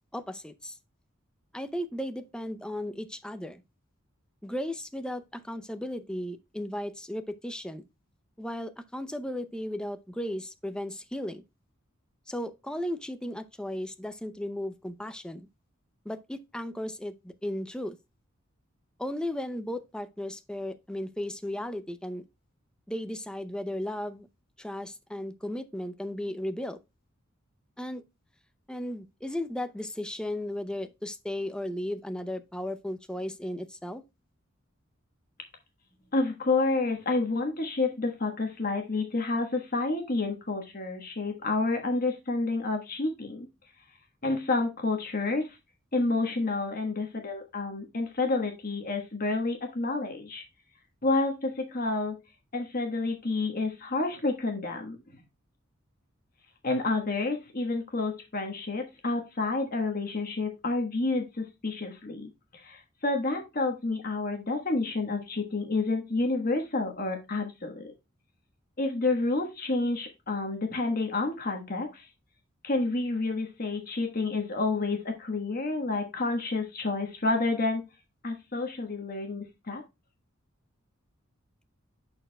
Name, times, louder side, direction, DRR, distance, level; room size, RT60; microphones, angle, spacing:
voice 1, 0.1-0.8 1.5-3.6 4.4-7.8 8.4-11.4 12.3-15.5 16.0-18.0 19.0-22.2 22.9-24.3 24.6-26.8 27.8-28.0 28.7-34.0, left 1 dB, 5° left, 0.6 m, -35 dB
voice 2, 36.1-43.5 44.2-45.5 45.9-50.4 51.0-52.2 52.5-55.0 56.6-67.9 68.8-72.1 72.6-77.8 78.2-79.8, left 3 dB, 45° left, 1.3 m, -29 dB
11.0 x 4.5 x 2.2 m
head